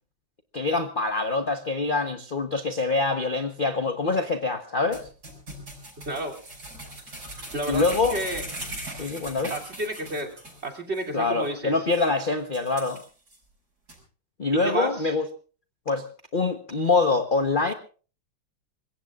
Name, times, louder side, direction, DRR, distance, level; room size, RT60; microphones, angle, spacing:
voice 1, 0.5-5.0 7.7-8.2 9.0-9.5 11.1-13.0 14.4-15.3 15.9-16.0 16.3-17.7, left 3 dB, 35° left, 1.0 m, -25 dB
sound 1, 4.9-10.7 10.9-11.0 11.5-11.6 11.9-12.1 12.5-13.4 13.9-14.0, right 1 dB, 55° right, 6.9 m, -39 dB
voice 2, 6.0-6.4 7.5-8.4 9.5-10.3 10.6-11.7 14.6-15.1, right 1 dB, 35° right, 3.3 m, -31 dB
25.0 x 22.0 x 2.5 m
omnidirectional pair, 2.0 m